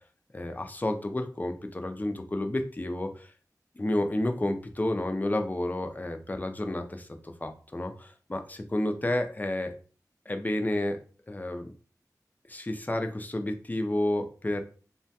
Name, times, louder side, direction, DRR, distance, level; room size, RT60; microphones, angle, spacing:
voice 1, 0.3-3.3 3.8-9.7 10.3-11.0 11.3-11.7 12.5-14.6, left 1 dB, 25° left, 5 dB, 0.4 m, -30 dB
2.9 x 2.2 x 2.7 m, 0.40 s
wide cardioid pair, 50°, 7 cm